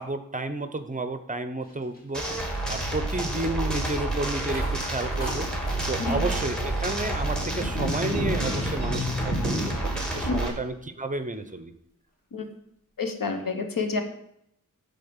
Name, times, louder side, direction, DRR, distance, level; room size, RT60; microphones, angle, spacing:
voice 1, 0.0-5.5 5.9-11.7, right 2 dB, 25° right, 9 dB, 0.7 m, -32 dB
sound 1, 1.6-9.9 10.2-10.8 11.2-11.5, equal, 25° left, 2.9 m, -45 dB
sound 2, 2.1-10.5, right 1 dB, ahead, 2.0 m, -28 dB
voice 2, 13.0-14.0, left 4 dB, 80° left, 6 dB, 1.3 m, -28 dB
10.5 x 4.0 x 7.2 m, 0.75 s
wide cardioid pair, 130°, 33 cm